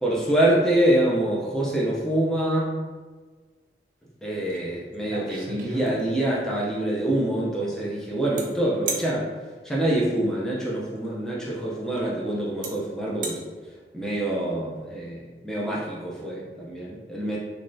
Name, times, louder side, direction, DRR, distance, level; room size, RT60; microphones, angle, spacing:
voice 1, 0.0-2.8 4.2-9.3 9.6-13.4 13.9-17.4, right 1 dB, 5° left, -5 dB, 0.5 m, -25 dB
sound 1, 4.5-4.6 4.9-6.4 8.4-8.5 8.9-9.1 10.9-11.1 12.0-12.1 12.6-12.7 13.1-13.4, right 3 dB, 50° right, 0.5 m, -33 dB
3.4 x 3.1 x 2.6 m, 1.4 s
head